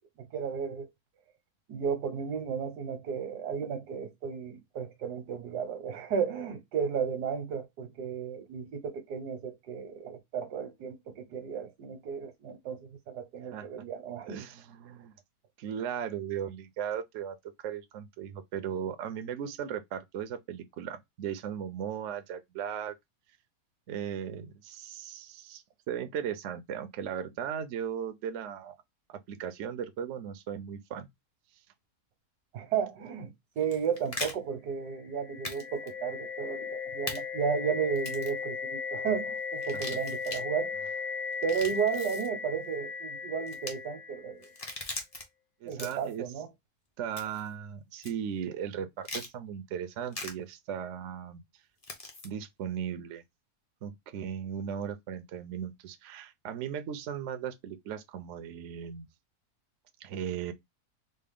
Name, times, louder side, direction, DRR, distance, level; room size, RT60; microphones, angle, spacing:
voice 1, 0.2-0.9 1.7-14.4 32.5-33.3 33.6-40.7 41.4-44.5 45.7-46.5, right 7 dB, 80° right, 1.4 m, -33 dB
voice 2, 14.3-15.1 15.6-17.4 17.6-22.9 23.9-28.7 29.1-31.1 39.7-40.0 45.6-46.3 47.0-51.4 52.2-53.2 53.8-59.1 60.0-60.5, right 8 dB, 65° right, 0.7 m, -37 dB
sound 1, 33.6-34.3 35.4-35.6 35.9-36.0 37.1-37.2 38.0-38.4 39.6-40.4 41.3-42.3 43.5-43.7 44.4-45.2 45.7-46.2 47.2-47.5 48.0-48.1 49.0-49.3 50.1-50.3 51.8-52.3, left 2 dB, 30° left, 0.7 m, -39 dB
sound 2, 34.9-44.8, left 5 dB, 80° left, 1.5 m, -37 dB
4.2 x 2.0 x 3.5 m
omnidirectional pair, 1.7 m